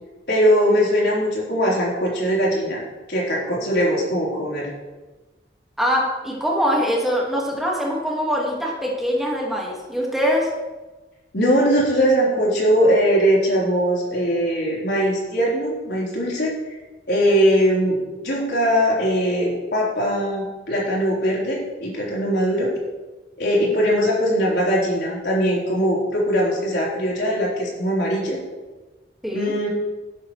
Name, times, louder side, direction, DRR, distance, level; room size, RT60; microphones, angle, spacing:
voice 1, 0.3-2.8 3.1-4.7 11.3-16.5 17.1-18.0 18.2-22.7 23.4-28.4 29.3-29.7, equal, 75° left, -5 dB, 3.8 m, -20 dB
voice 2, 5.8-10.5 29.2-29.5, equal, ahead, -3 dB, 1.7 m, -23 dB
13.0 x 10.5 x 3.2 m, 1.2 s
head